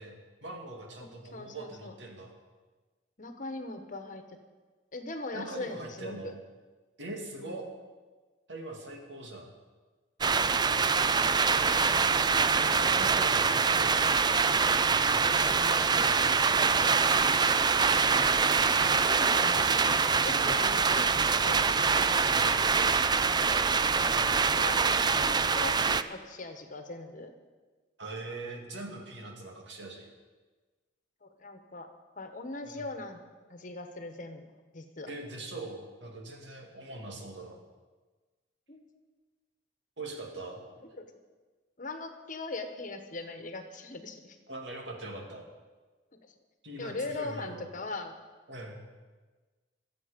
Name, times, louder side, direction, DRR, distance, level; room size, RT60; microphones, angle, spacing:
voice 1, 0.0-2.3 5.3-6.4 7.0-7.7 8.5-9.5 12.7-14.2 14.8-16.7 22.3-22.6 28.0-30.1 32.7-32.8 35.1-37.6 40.0-40.6 44.5-45.4 46.6-47.7 48.5-48.8, right 2 dB, 70° right, 1 dB, 2.6 m, -42 dB
voice 2, 1.3-1.9 3.2-4.2 4.9-6.3 7.4-7.7 10.6-11.8 18.9-19.8 20.2-21.0 21.4-21.8 23.5-23.8 24.2-24.8 25.0-27.3 31.2-31.9 32.2-33.2 33.5-34.5 34.7-35.1 38.7-38.9 40.9-41.1 41.8-44.4 46.2-46.4 46.8-48.2, left 2 dB, 45° left, 7 dB, 1.3 m, -40 dB
sound 1, 10.2-26.0, right 5 dB, 25° right, 0.4 m, -25 dB
23.0 x 7.8 x 5.2 m, 1.3 s
head